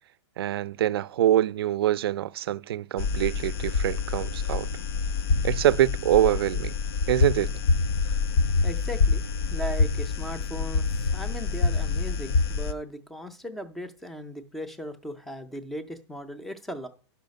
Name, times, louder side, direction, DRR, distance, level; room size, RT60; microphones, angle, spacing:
voice 1, 0.4-4.7 5.4-6.7 7.1-7.5, right 12 dB, 55° right, 0.4 m, -24 dB
sound 1, 3.0-12.7, left 4 dB, 55° left, 0.7 m, -26 dB
voice 2, 8.6-9.2 9.5-16.9, equal, ahead, 0.4 m, -37 dB
11.0 x 5.6 x 5.2 m
hypercardioid pair, 170°, 15 cm